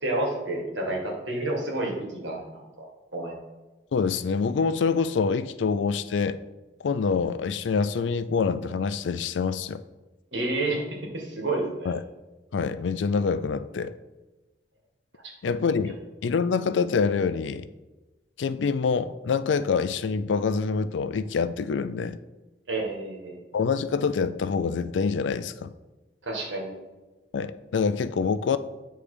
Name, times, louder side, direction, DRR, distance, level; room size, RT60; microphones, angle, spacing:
voice 1, 0.0-3.3 10.3-11.9 22.7-23.4 26.2-26.7, right 2 dB, 80° right, 0 dB, 1.8 m, -30 dB
voice 2, 3.9-6.4 6.8-9.8 11.9-12.0 12.5-13.9 15.4-16.0 16.2-17.7 18.4-22.2 23.5-25.7 27.3-28.6, left 5 dB, 80° left, 13 dB, 0.4 m, -26 dB
8.7 x 3.3 x 4.9 m, 1.1 s
head